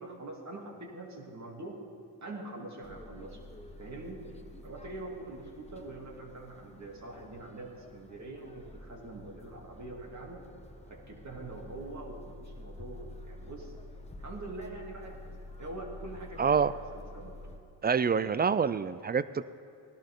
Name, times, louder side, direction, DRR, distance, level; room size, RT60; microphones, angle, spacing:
voice 1, 0.0-1.8 2.2-3.4 3.8-4.2 4.6-10.4 10.9-13.7 14.2-15.2 15.6-16.6 16.9-17.4, right 2 dB, 40° right, 0 dB, 2.8 m, -44 dB
sound 1, 2.8-17.6, left 1 dB, 15° left, 1.1 m, -49 dB
voice 2, 16.4-16.7 17.8-19.4, right 6 dB, 25° right, 16 dB, 0.3 m, -26 dB
18.0 x 11.5 x 3.8 m, 2.6 s
cardioid pair, 70°, 43 cm